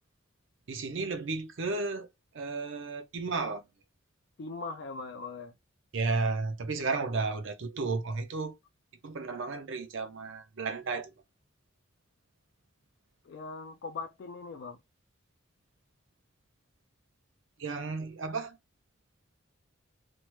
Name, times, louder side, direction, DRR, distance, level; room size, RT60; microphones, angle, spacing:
voice 1, 0.7-2.1 2.3-3.6 5.9-8.5 9.0-11.1 17.6-18.6, right 3 dB, 65° right, 0.5 m, -33 dB
voice 2, 4.4-5.5 13.2-14.8, left 4 dB, 55° left, 0.3 m, -40 dB
3.0 x 2.0 x 3.0 m
head